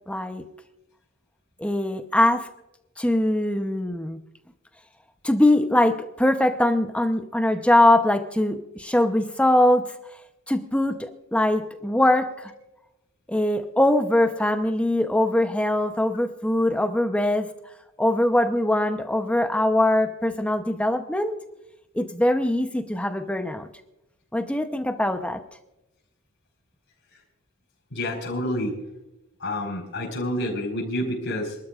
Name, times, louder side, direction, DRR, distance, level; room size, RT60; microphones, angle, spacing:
voice 1, 0.1-0.4 1.6-2.5 3.0-4.2 5.2-9.9 10.5-12.5 13.3-17.5 18.0-21.3 21.9-23.7 24.3-25.4, left 1 dB, 5° left, 7 dB, 0.7 m, -22 dB
voice 2, 27.9-28.8 29.4-31.6, left 1 dB, 60° left, -2 dB, 4.5 m, -28 dB
27.5 x 12.5 x 2.4 m, 0.95 s
head